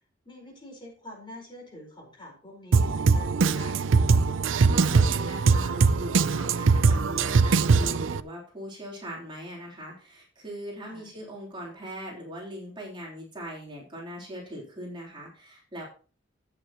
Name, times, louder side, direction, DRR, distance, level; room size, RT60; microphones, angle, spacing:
voice 1, 0.2-3.8 10.9-11.1, left 1 dB, 25° left, 0 dB, 4.7 m, -45 dB
Drum kit, 2.7-8.2, right 4 dB, 75° right, 0.5 m, -22 dB
voice 2, 4.4-15.8, equal, 25° right, -4 dB, 3.6 m, -40 dB
13.5 x 9.2 x 3.0 m, 0.37 s
head